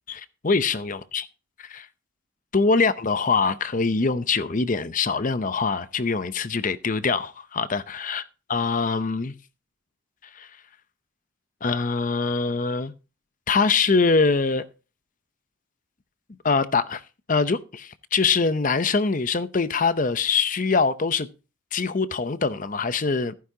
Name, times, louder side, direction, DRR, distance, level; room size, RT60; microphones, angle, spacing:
voice 1, 0.1-1.3 1.6-1.9 2.5-8.2 8.5-9.3 10.3-10.5 11.6-12.9 13.5-14.7 16.4-17.0 17.3-21.3 21.7-23.3, left 4 dB, 35° left, 0.6 m, -23 dB
15.0 x 9.5 x 2.7 m
head